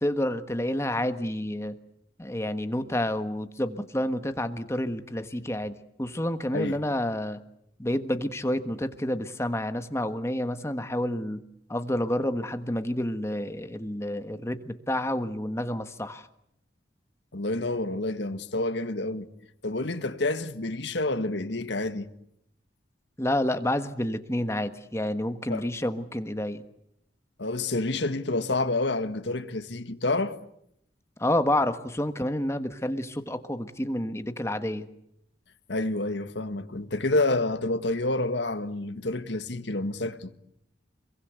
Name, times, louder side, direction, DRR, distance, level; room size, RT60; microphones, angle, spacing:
voice 1, 0.0-1.7 2.2-7.4 7.8-11.4 11.7-16.3 23.2-26.6 31.2-34.9, left 1 dB, 15° left, 1.4 m, -29 dB
voice 2, 17.3-19.3 19.6-22.1 25.5-25.7 27.4-30.4 35.7-40.3, left 2 dB, 70° left, 1.6 m, -28 dB
26.5 x 23.0 x 8.2 m
head